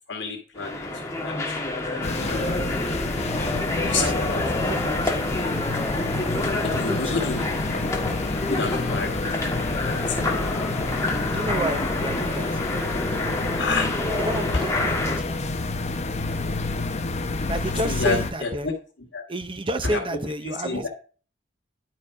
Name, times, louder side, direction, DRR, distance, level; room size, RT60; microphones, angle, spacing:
voice 1, 0.1-1.4 1.7-2.7 3.8-4.4 6.6-7.5 8.4-10.2 13.6-14.0 14.5-14.6 17.8-18.7 19.1-19.2 19.8-20.0 20.6-20.9, left 4 dB, 65° left, 1.9 m, -29 dB
sound 1, 0.6-15.2, left 2 dB, 15° left, 1.6 m, -28 dB
sound 2, 2.0-18.3, left 2 dB, 35° left, 0.8 m, -29 dB
voice 2, 3.9-4.3 4.6-5.1 6.6-7.5 11.3-12.6 14.2-15.4 17.5-18.7 19.3-20.9, right 2 dB, 25° right, 0.8 m, -30 dB
10.5 x 4.5 x 4.8 m
head